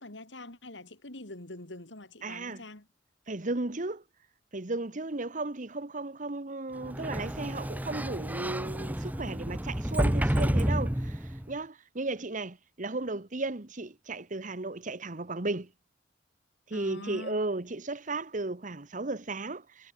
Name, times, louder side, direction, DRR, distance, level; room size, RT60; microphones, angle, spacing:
voice 1, 0.0-2.9 16.7-17.4, left 2 dB, 80° left, 3.7 m, -44 dB
voice 2, 2.2-2.6 3.3-4.0 4.5-15.7 16.7-19.9, right 2 dB, 45° right, 1.3 m, -35 dB
Sliding door, 6.8-11.5, equal, 10° right, 1.0 m, -30 dB
head